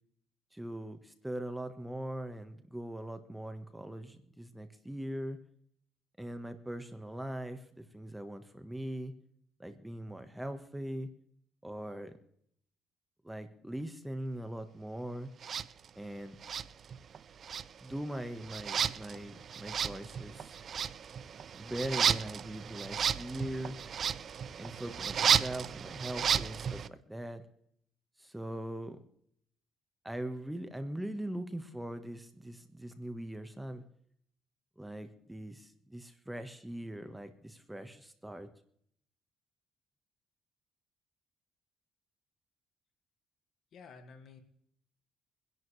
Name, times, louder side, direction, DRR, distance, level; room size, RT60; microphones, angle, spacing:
voice 1, 0.5-5.4 6.2-9.1 9.6-11.1 11.6-12.2 13.2-15.3 16.0-16.4 17.8-20.5 21.6-23.8 24.6-27.4 28.2-29.0 30.0-33.8 34.8-38.5, right 1 dB, 5° right, 8 dB, 1.4 m, -41 dB
sound 1, 15.4-15.7 16.4-17.2 17.4-26.9, right 7 dB, 50° right, 0.5 m, -33 dB
voice 2, 43.7-44.4, left 5 dB, 65° left, 7 dB, 1.9 m, -52 dB
24.5 x 11.0 x 3.3 m, 0.66 s
cardioid pair, 100°, 0 cm